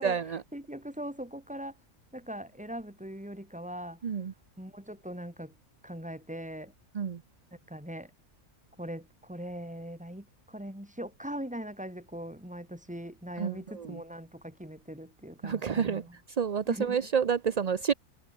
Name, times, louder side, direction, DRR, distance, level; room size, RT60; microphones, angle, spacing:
voice 1, 0.0-0.4 4.0-4.3 6.9-7.2 13.4-14.0 15.4-16.0 16.4-17.9, right 7 dB, 50° right, 0.5 m, -29 dB
voice 2, 0.5-1.8 2.1-4.0 4.6-5.5 5.8-6.7 7.7-8.1 8.8-16.2 16.7-17.0, equal, 5° right, 2.8 m, -40 dB
omnidirectional pair, 1.6 m